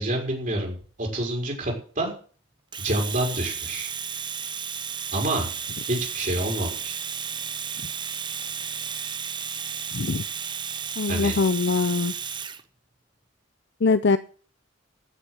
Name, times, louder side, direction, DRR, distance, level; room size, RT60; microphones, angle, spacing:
voice 1, 0.0-2.1 2.8-3.9 5.1-5.5 5.9-6.9 11.1-11.4, right 1 dB, 40° right, 0 dB, 4.8 m, -27 dB
Domestic sounds home sounds, 2.7-12.6, right 7 dB, 25° right, 0.8 m, -33 dB
voice 2, 11.0-12.1 13.8-14.2, left 4 dB, 60° left, 13 dB, 0.6 m, -22 dB
16.0 x 6.6 x 7.9 m, 0.42 s
head